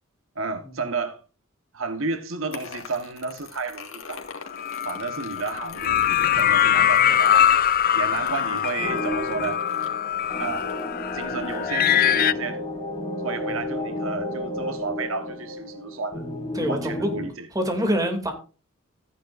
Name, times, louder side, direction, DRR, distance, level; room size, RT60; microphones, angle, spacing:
voice 1, 0.3-1.2 1.7-4.3 4.8-7.5 7.9-9.6 10.4-10.7 11.1-12.6 13.2-16.2 16.7-17.5, right 4 dB, 80° right, 1.3 m, -32 dB
sound 1, 2.5-11.7, left 4 dB, 90° left, 2.1 m, -43 dB
sound 2, 4.5-12.3, left 10 dB, 45° left, 0.5 m, -22 dB
sound 3, 8.8-17.3, left 1 dB, 25° left, 5.7 m, -32 dB
voice 2, 16.5-17.1 17.5-18.3, equal, 20° right, 2.7 m, -25 dB
14.5 x 9.9 x 2.6 m
head